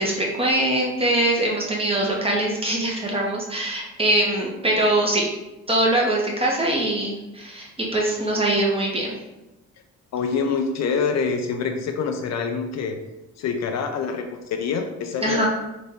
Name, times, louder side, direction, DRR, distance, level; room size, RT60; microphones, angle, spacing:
voice 1, 0.0-5.3 5.7-9.1 15.2-15.5, right 1 dB, 20° right, -3 dB, 1.1 m, -22 dB
voice 2, 10.1-13.0 13.4-15.5, left 5 dB, 60° left, 6 dB, 0.5 m, -26 dB
4.0 x 2.6 x 3.4 m, 0.99 s
cardioid pair, 90°, 30 cm